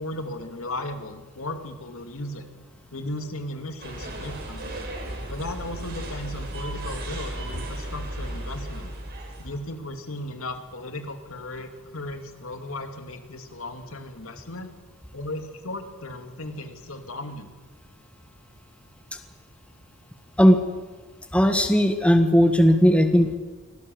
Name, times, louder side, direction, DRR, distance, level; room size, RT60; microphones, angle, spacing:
voice 1, 0.0-2.5 2.9-4.8 5.3-8.9 9.4-14.7 15.1-17.5, left 1 dB, 80° left, 6 dB, 2.6 m, -36 dB
sound 1, 3.8-9.6, right 1 dB, 50° right, 5.0 m, -35 dB
voice 2, 21.3-23.4, equal, 5° left, 6 dB, 1.5 m, -17 dB
24.0 x 17.5 x 7.9 m, 1.3 s
head